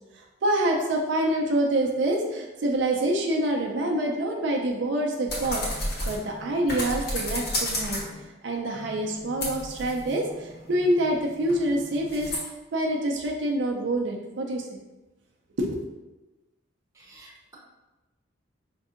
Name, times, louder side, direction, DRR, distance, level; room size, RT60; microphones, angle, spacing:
voice 1, 0.4-8.1 8.4-12.3 12.7-14.7 15.6-15.7, right 1 dB, 70° right, 0 dB, 0.5 m, -26 dB
sound 1, 5.3-8.2 8.7-12.4, left 1 dB, 55° left, 1.0 m, -33 dB
voice 2, 16.9-17.5, right 2 dB, 15° right, -5 dB, 0.8 m, -51 dB
5.1 x 2.7 x 2.5 m, 1.1 s
head